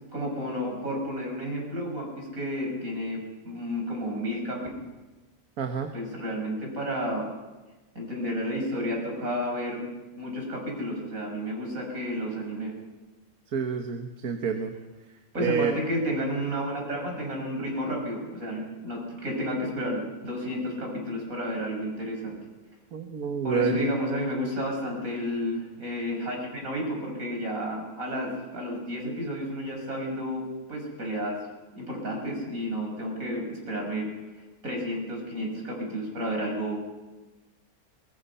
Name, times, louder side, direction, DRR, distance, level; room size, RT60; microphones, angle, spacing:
voice 1, 0.1-4.6 5.9-7.3 7.9-9.8 10.2-12.7 15.3-22.4 23.4-31.4 31.7-34.1 34.6-36.8, equal, 70° right, 0 dB, 6.3 m, -31 dB
voice 2, 5.6-5.9 13.5-14.7 15.4-15.7 22.9-23.8, right 7 dB, 85° right, 5 dB, 1.7 m, -28 dB
22.5 x 21.5 x 5.6 m, 1.2 s
omnidirectional pair, 1.5 m